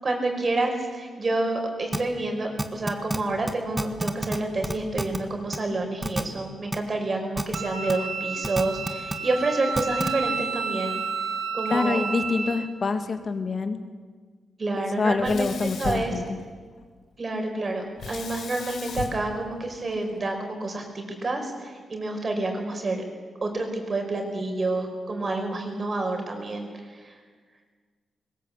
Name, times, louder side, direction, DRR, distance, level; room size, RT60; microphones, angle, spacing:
voice 1, 0.0-11.0 11.5-12.0 14.6-16.1 17.2-23.0 23.4-27.2, right 2 dB, 35° right, 3 dB, 5.0 m, -29 dB
sound 1, 1.9-2.0 2.6-3.2 3.5-3.6 3.8-4.4 4.6-5.2 5.5-5.6 6.0-6.2 6.7-6.8 7.4-7.6 7.9-8.0 8.4-9.1 9.8-10.1, right 1 dB, 10° right, 1.6 m, -27 dB
Wind instrument woodwind instrument, 7.5-12.7, right 5 dB, 80° right, 2.4 m, -31 dB
voice 2, 11.7-13.8 15.0-16.4, left 4 dB, 45° left, 7 dB, 2.0 m, -26 dB
Sink (filling or washing), 15.2-16.8 18.0-20.2, left 5 dB, 75° left, 2.7 m, -37 dB
21.5 x 20.0 x 8.5 m, 1.5 s
wide cardioid pair, 125°, 0 cm